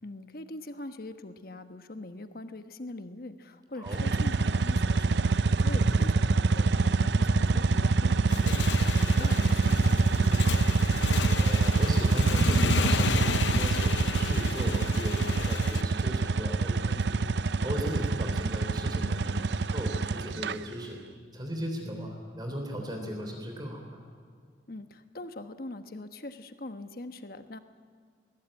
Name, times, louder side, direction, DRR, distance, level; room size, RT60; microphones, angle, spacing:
voice 1, 0.0-10.7 24.7-27.6, left 2 dB, 55° left, 8 dB, 1.2 m, -42 dB
sound 1, 3.9-20.6, right 3 dB, 75° right, 0.6 m, -25 dB
Motorcycle / Engine, 8.2-15.8, left 5 dB, 85° left, 0.6 m, -32 dB
voice 2, 11.2-17.2 17.6-21.0 21.3-24.0, equal, 25° right, 2 dB, 3.4 m, -37 dB
20.5 x 19.5 x 8.9 m, 2.1 s
head